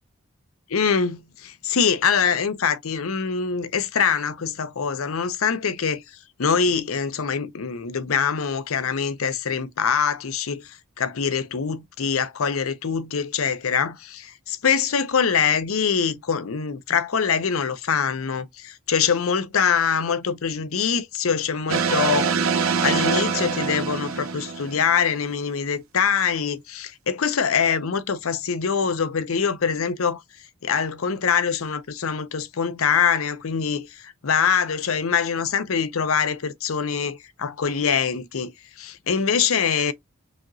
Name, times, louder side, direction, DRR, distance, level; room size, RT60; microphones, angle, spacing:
voice 1, 0.7-6.0 6.4-30.2 30.6-39.9, left 6 dB, 85° left, 0.6 m, -24 dB
sound 1, 21.7-25.1, right 5 dB, 80° right, 0.7 m, -24 dB
4.9 x 2.9 x 2.6 m
head